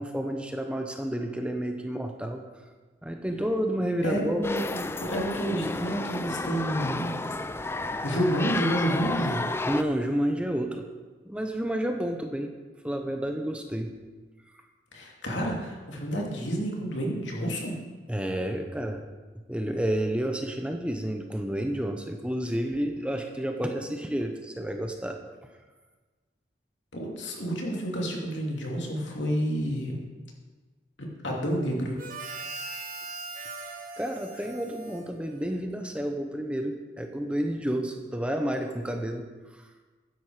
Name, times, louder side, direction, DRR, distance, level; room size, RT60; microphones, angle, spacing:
voice 1, 0.0-2.4 3.0-4.5 9.7-10.9 11.2-12.5 12.8-13.9 14.5-14.6 18.1-19.0 19.5-25.2 34.0-39.3 39.5-39.6, right 1 dB, 5° right, 4 dB, 0.8 m, -30 dB
voice 2, 4.0-7.1 8.0-9.4 14.9-17.7 26.9-30.0 31.0-32.0, equal, 85° left, -1 dB, 2.8 m, -29 dB
sound 1, 4.4-9.8, left 2 dB, 15° left, 0.3 m, -31 dB
Harmonica, 32.0-35.8, right 3 dB, 45° right, 1.4 m, -40 dB
12.5 x 10.5 x 4.9 m, 1.3 s
head